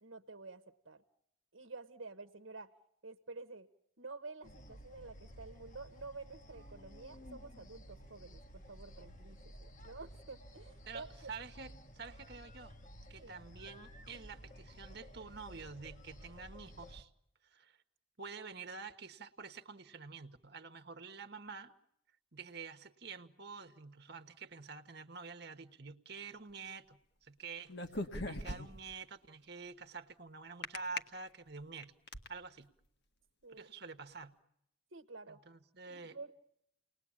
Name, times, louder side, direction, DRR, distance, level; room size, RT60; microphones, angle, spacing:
voice 1, 0.0-1.0 1.5-2.7 3.0-3.7 4.0-11.3 13.2-13.3 33.4-33.7 34.9-35.4 35.9-36.3, right 3 dB, 70° right, 8 dB, 1.2 m, -50 dB
sound 1, 4.4-17.0, equal, 40° left, 1.4 m, -54 dB
voice 2, 10.9-12.8 13.1-17.1 17.4-17.8 18.2-21.7 22.3-31.9 32.3-32.7 33.5-34.4 35.3-36.3, right 5 dB, 55° right, 7 dB, 1.3 m, -48 dB
sound 2, 27.7-28.9 30.6-31.0 31.6-32.3, left 2 dB, 55° left, 1.7 m, -39 dB
30.0 x 20.0 x 8.8 m, 0.82 s
head